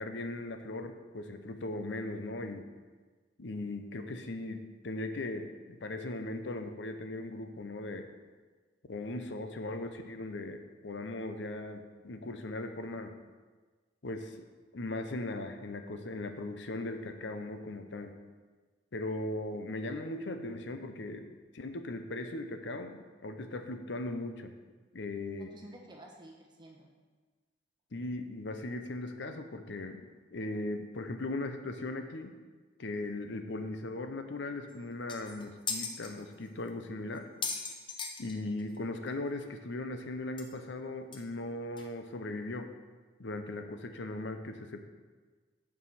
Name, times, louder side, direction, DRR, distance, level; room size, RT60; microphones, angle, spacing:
voice 1, 0.0-2.7 3.4-8.1 8.9-13.1 14.0-14.5 14.7-18.2 18.9-24.5 24.9-25.5 27.9-32.3 32.8-37.3 38.2-42.7 43.2-44.8, left 2 dB, 70° left, 7 dB, 0.7 m, -38 dB
voice 2, 25.4-26.9, right 1 dB, 25° right, 0 dB, 1.1 m, -51 dB
sound 1, 34.7-34.8 35.1-36.1 36.7-36.8 37.2-38.8 39.1-39.2 39.4-39.5 40.4-40.5 41.1-41.2 41.8-41.9, left 4 dB, 25° left, 0.7 m, -37 dB
8.4 x 4.9 x 5.6 m, 1.4 s
head